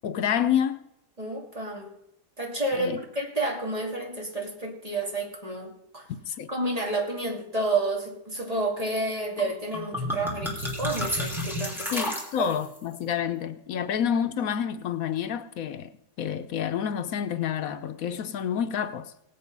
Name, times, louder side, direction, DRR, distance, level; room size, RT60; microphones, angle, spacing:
voice 1, 0.0-0.8 2.7-3.0 6.3-6.5 11.9-15.9 16.2-19.1, left 8 dB, 75° left, 1.2 m, -28 dB
voice 2, 1.2-1.9 2.4-6.1 6.5-12.1 12.4-12.5, right 2 dB, 25° right, 2.5 m, -30 dB
sound 1, 9.4-9.5 9.7-12.8, left 1 dB, ahead, 3.1 m, -32 dB
17.5 x 8.4 x 5.3 m
omnidirectional pair, 1.5 m